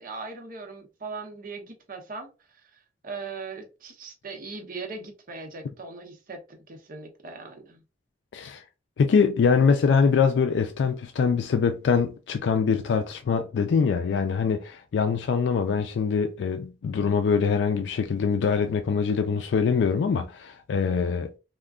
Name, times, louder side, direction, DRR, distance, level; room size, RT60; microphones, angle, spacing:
voice 1, 0.0-2.3 3.0-7.8, right 4 dB, 50° right, 0.8 m, -39 dB
voice 2, 9.0-21.4, left 5 dB, 80° left, 0.3 m, -23 dB
2.4 x 2.1 x 3.5 m
head